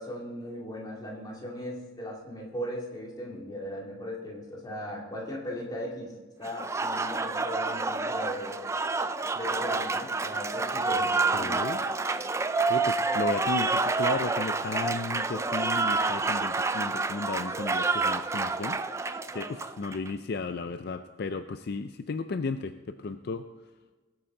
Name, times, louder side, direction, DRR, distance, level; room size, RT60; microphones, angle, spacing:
voice 1, 0.0-8.6 9.3-11.7, equal, 20° left, -2 dB, 2.4 m, -38 dB
Applause, 6.4-20.1, right 3 dB, 15° right, 0.3 m, -28 dB
voice 2, 11.3-11.8 12.7-23.5, left 4 dB, 55° left, 9 dB, 0.4 m, -34 dB
19.5 x 8.8 x 3.8 m, 1.3 s
head